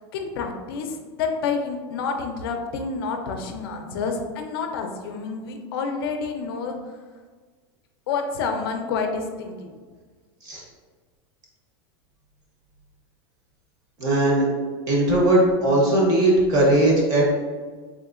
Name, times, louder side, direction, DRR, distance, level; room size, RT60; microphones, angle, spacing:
voice 1, 0.1-6.8 8.1-9.7, left 5 dB, 60° left, 4 dB, 0.4 m, -28 dB
voice 2, 14.0-14.4 14.9-17.4, right 1 dB, 25° right, -3 dB, 0.7 m, -19 dB
3.6 x 2.7 x 2.5 m, 1.5 s
supercardioid pair, 175°, 14 cm